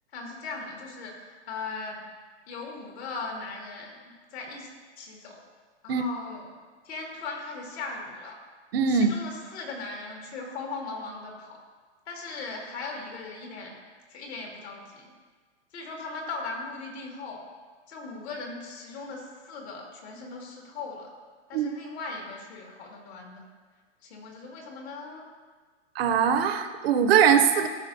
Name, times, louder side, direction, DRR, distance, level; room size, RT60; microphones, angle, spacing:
voice 1, 0.1-2.0 2.5-4.0 4.3-4.7 5.0-5.4 5.8-6.5 6.8-8.4 8.9-11.6 12.1-13.8 14.1-15.1 15.7-17.4 17.9-21.1 21.5-23.4 24.0-25.2, left 3 dB, 65° left, 0 dB, 2.1 m, -38 dB
voice 2, 8.7-9.1 21.5-21.7 26.0-27.7, right 7 dB, 55° right, 8 dB, 0.7 m, -21 dB
14.0 x 4.9 x 2.7 m, 1.5 s
hypercardioid pair, 135°, 35 cm